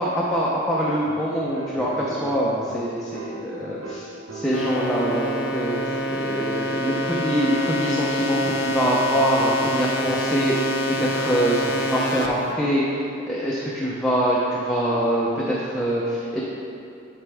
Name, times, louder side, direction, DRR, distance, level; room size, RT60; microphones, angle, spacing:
voice 1, 0.0-12.8 13.3-16.4, equal, 5° left, -7 dB, 0.6 m, -24 dB
sound 1, 1.1-12.7 14.9-15.7, right 2 dB, 75° right, 0.8 m, -38 dB
sound 2, 4.5-12.3, left 1 dB, 65° left, 0.7 m, -26 dB
10.5 x 3.9 x 3.4 m, 2.6 s
head